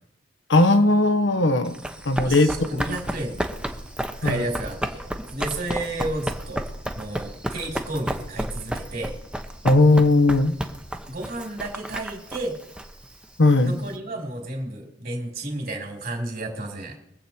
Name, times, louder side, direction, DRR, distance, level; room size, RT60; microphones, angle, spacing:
voice 1, 0.5-1.8 2.0-2.7 4.2-4.5 9.6-10.5 13.4-13.7, left 2 dB, 70° left, 9 dB, 1.0 m, -18 dB
Run, 1.7-13.9, right 1 dB, 5° right, 0.9 m, -32 dB
voice 2, 2.2-3.5 4.2-5.0 5.3-6.6 6.9-9.1 11.0-12.5 13.6-17.0, right 2 dB, 55° right, 2 dB, 3.1 m, -32 dB
23.0 x 7.9 x 4.4 m, 0.82 s
head